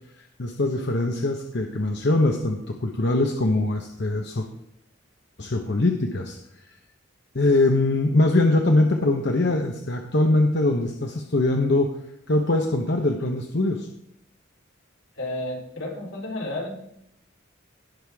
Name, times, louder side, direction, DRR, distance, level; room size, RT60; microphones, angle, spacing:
voice 1, 0.2-4.4 5.4-6.4 7.3-12.0 12.3-13.9, left 2 dB, 55° left, 3 dB, 0.9 m, -22 dB
voice 2, 15.2-16.8, left 1 dB, 80° left, -3 dB, 3.9 m, -32 dB
18.5 x 6.5 x 3.5 m, 0.75 s
head